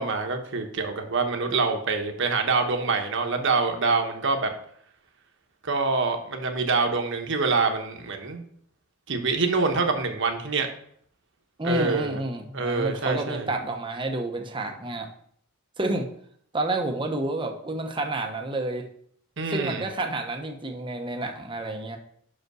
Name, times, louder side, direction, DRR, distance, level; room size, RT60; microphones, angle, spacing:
voice 1, 0.0-4.5 5.6-8.4 9.1-10.7 11.6-12.2 12.5-13.5 19.4-19.8, right 4 dB, 60° right, 4 dB, 1.2 m, -25 dB
voice 2, 11.6-15.1 15.8-16.1 16.5-18.8 19.5-22.0, right 2 dB, 25° right, 3 dB, 1.0 m, -29 dB
6.0 x 5.4 x 6.2 m, 0.64 s
head